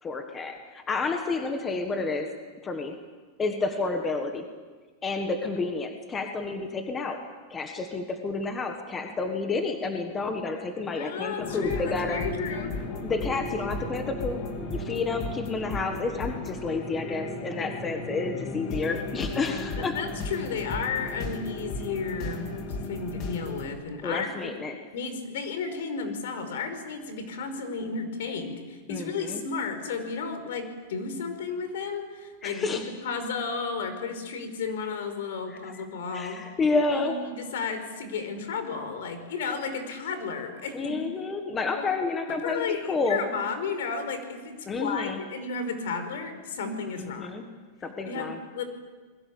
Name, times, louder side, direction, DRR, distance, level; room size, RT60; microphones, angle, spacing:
voice 1, 0.0-2.3 2.6-3.0 3.4-4.5 5.0-7.2 7.5-12.2 13.0-20.0 24.0-24.8 28.9-29.4 32.4-32.8 35.5-35.8 36.1-37.2 40.7-43.2 44.7-45.2 47.0-47.4 47.8-48.4, left 3 dB, 15° left, 5 dB, 1.5 m, -30 dB
voice 2, 10.9-12.7 19.8-22.5 22.9-24.5 24.9-36.4 36.9-41.0 41.8-41.9 42.3-47.3 48.0-48.6, left 5 dB, 70° left, 8 dB, 5.2 m, -33 dB
sound 1, 11.4-23.7, left 2 dB, 30° left, 3.0 m, -35 dB
29.5 x 21.5 x 8.7 m, 1.4 s
supercardioid pair, 175°, 0 cm